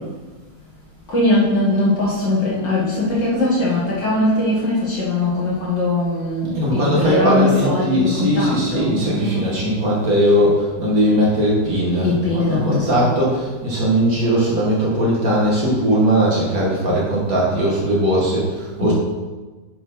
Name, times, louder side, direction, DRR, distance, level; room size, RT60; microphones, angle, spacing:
voice 1, 1.1-9.7 12.0-13.1 18.8-18.9, left 2 dB, 50° left, -7 dB, 1.3 m, -20 dB
voice 2, 6.5-18.9, equal, 55° right, -5 dB, 1.0 m, -19 dB
7.3 x 6.2 x 5.6 m, 1.3 s
omnidirectional pair, 4.7 m